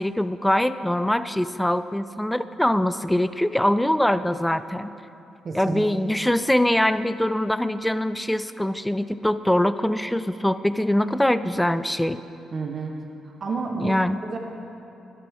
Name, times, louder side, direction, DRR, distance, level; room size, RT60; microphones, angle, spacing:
voice 1, 0.0-4.9 5.5-12.2 13.8-14.2, left 1 dB, 5° left, 13 dB, 0.4 m, -23 dB
voice 2, 5.4-5.9 12.5-12.9 13.2-13.9 14.3-14.4, right 4 dB, 45° right, 1 dB, 1.0 m, -30 dB
12.5 x 11.0 x 3.6 m, 2.8 s
cardioid pair, 90°, 0 cm